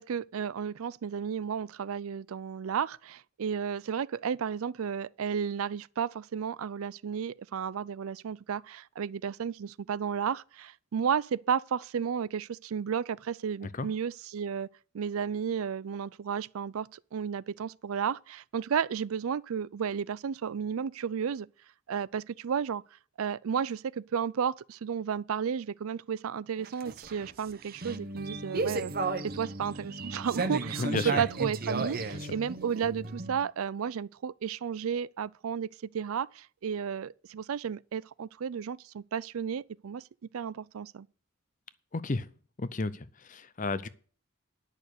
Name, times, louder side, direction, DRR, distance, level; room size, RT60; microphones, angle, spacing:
voice 1, 0.0-14.7 14.9-21.5 21.9-22.8 23.2-28.9 29.2-35.7 35.9-40.0 40.3-41.1, right 7 dB, 80° right, 0.4 m, -33 dB
sound 1, 26.6-33.4, right 3 dB, 45° right, 0.9 m, -34 dB
voice 2, 30.8-31.2 41.9-42.3 42.6-43.9, left 3 dB, 35° left, 0.6 m, -32 dB
10.5 x 6.5 x 6.6 m
head